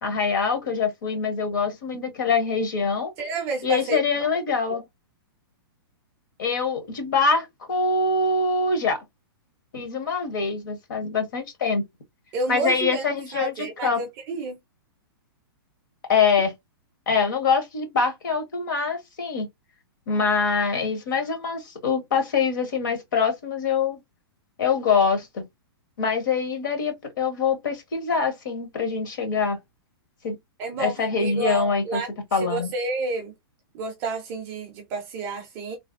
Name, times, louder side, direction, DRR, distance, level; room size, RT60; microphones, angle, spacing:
voice 1, 0.0-3.1 3.6-4.8 6.4-9.0 9.7-11.8 12.5-13.5 13.8-14.0 16.1-16.5 17.1-19.5 20.1-24.0 24.6-25.4 26.0-29.6 30.2-30.3 30.8-32.0 32.3-32.7, left 5 dB, 50° left, 1.2 m, -24 dB
voice 2, 3.2-4.3 4.7-4.8 12.3-13.1 13.3-14.6 30.6-30.9 31.2-33.3 33.7-35.8, right 3 dB, 15° right, 0.5 m, -30 dB
3.2 x 2.3 x 2.5 m
hypercardioid pair, 180°, 13 cm